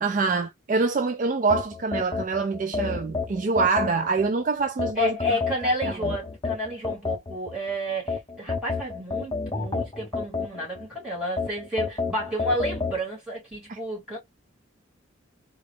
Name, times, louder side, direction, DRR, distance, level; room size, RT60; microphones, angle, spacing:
voice 1, 0.0-5.2 5.8-6.0 13.7-13.8, right 4 dB, 40° right, 0.4 m, -25 dB
sound 1, 1.5-4.3 4.8-7.6 8.1-10.9 11.4-13.0, left 4 dB, 25° left, 0.7 m, -29 dB
voice 2, 4.9-14.2, equal, 5° right, 2.9 m, -31 dB
3.8 x 2.4 x 3.4 m
head